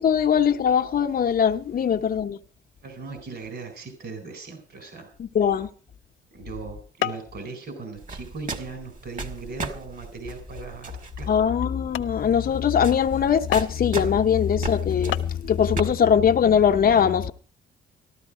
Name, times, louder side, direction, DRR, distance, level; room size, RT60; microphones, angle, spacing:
voice 1, 0.0-2.4 5.2-5.7 11.3-17.3, left 8 dB, 50° left, 0.8 m, -21 dB
voice 2, 2.8-5.1 6.3-11.3, right 4 dB, 55° right, 4.2 m, -38 dB
sound 1, 5.8-6.1 7.0-7.4 7.8-8.2 8.8-8.9 9.5-9.7 10.3-10.4 11.0-11.1 11.5-11.6 11.9-12.2 13.5-13.9 14.8-14.9 15.1-15.4, left 13 dB, 80° left, 0.7 m, -31 dB
sound 2, 8.0-15.8, right 3 dB, 40° right, 2.0 m, -37 dB
13.5 x 13.0 x 4.9 m
cardioid pair, 90°, 20 cm